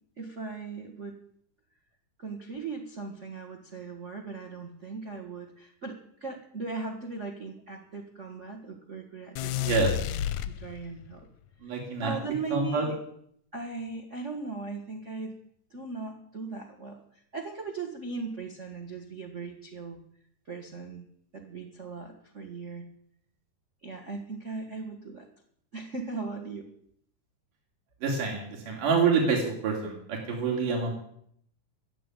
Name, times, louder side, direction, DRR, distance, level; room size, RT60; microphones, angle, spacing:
voice 1, 0.2-1.1 2.2-9.9 10.4-11.3 12.0-13.0 13.5-15.3 15.7-17.0 17.3-20.0 20.5-21.0 21.3-22.9 23.8-25.3 25.7-26.7, right 4 dB, 35° right, 5 dB, 1.2 m, -38 dB
sound 1, 9.4-11.1, left 11 dB, 75° left, 1.8 m, -30 dB
voice 2, 9.6-9.9 11.6-12.1 12.5-12.8 28.0-30.9, right 5 dB, 70° right, -1 dB, 4.7 m, -27 dB
14.0 x 8.2 x 9.1 m, 0.67 s
omnidirectional pair, 3.9 m